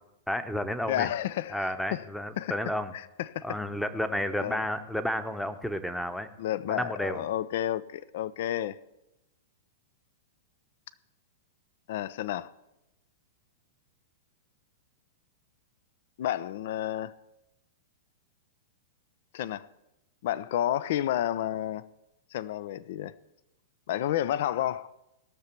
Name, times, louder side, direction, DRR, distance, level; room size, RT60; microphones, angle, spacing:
voice 1, 0.3-1.1 1.5-2.9 3.4-6.3 6.7-7.3, equal, 5° left, 0.9 m, -31 dB
voice 2, 0.9-2.0 2.4-2.5 2.9-3.6 4.4-4.6 6.4-8.8 11.9-12.5 16.2-17.1 19.3-19.7 20.2-21.9 22.3-23.1 23.9-24.9, left 12 dB, 55° left, 0.4 m, -31 dB
18.0 x 6.7 x 4.5 m
figure-of-eight pair, 105°, 0 cm